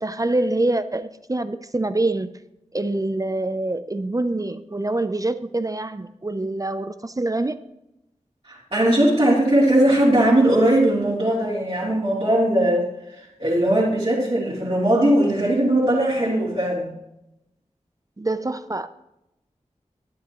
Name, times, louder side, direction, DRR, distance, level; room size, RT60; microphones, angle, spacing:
voice 1, 0.0-2.3 2.7-7.6 18.2-18.9, right 2 dB, 25° right, 11 dB, 0.5 m, -25 dB
voice 2, 8.5-12.9 13.4-16.9, right 1 dB, 45° right, -9 dB, 3.1 m, -19 dB
11.5 x 9.6 x 3.0 m, 0.87 s
wide cardioid pair, 50°, 13 cm